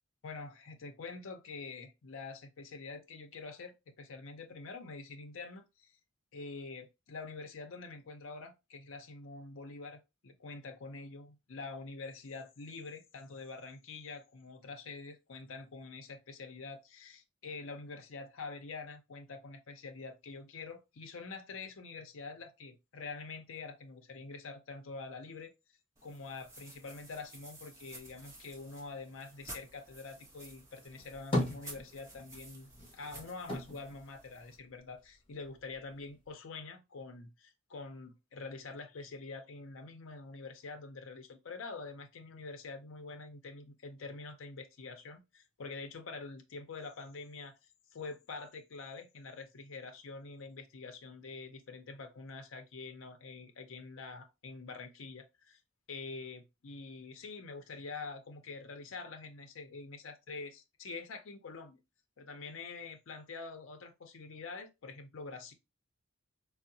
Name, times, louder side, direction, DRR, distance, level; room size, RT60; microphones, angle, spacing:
voice 1, 0.2-5.9 6.3-25.5 26.0-47.5 47.9-55.6 55.9-61.8 62.2-65.5, left 4 dB, 65° left, 0.5 m, -46 dB
sound 1, 26.0-34.6, right 1 dB, 15° right, 0.9 m, -53 dB
sound 2, 30.9-32.4 32.7-35.1 35.4-36.3, left 1 dB, 25° left, 1.2 m, -37 dB
3.6 x 2.0 x 2.7 m
head